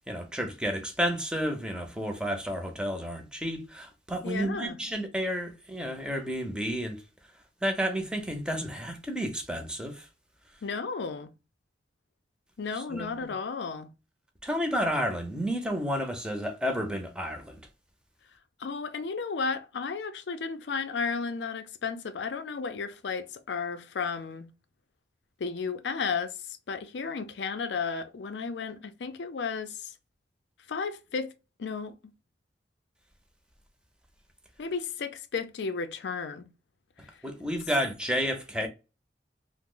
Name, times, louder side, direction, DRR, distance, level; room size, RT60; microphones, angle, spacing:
voice 1, 0.1-7.0 7.6-10.1 12.9-13.3 14.4-17.6 37.2-38.7, equal, 5° right, 0.5 m, -31 dB
voice 2, 4.2-4.8 10.6-11.3 12.6-13.9 18.6-24.5 25.4-29.9 30.7-31.3 31.6-32.1 34.6-36.5, left 5 dB, 75° left, 0.4 m, -33 dB
2.9 x 2.0 x 3.7 m
head